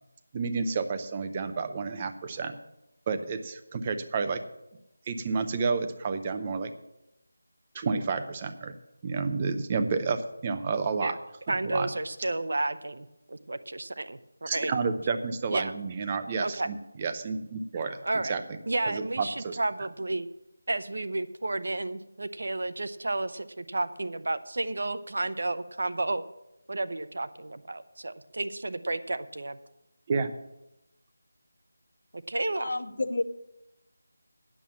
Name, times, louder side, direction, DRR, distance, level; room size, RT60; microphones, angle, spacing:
voice 1, 0.3-2.6 3.1-4.4 5.1-6.7 7.7-8.7 9.0-11.2 11.5-11.9 14.5-18.0 18.3-18.6 18.9-19.6 30.1-30.3, right 4 dB, 15° right, 9 dB, 0.5 m, -30 dB
voice 2, 11.5-14.7 15.5-15.7 16.4-16.7 18.0-18.3 18.7-20.3 20.7-26.2 26.7-29.6 32.1-32.8, right 2 dB, 60° right, 12 dB, 0.7 m, -32 dB
voice 3, 32.6-33.2, left 2 dB, 50° left, 13 dB, 0.7 m, -30 dB
9.2 x 7.2 x 7.3 m, 0.91 s
figure-of-eight pair, 175°, 0 cm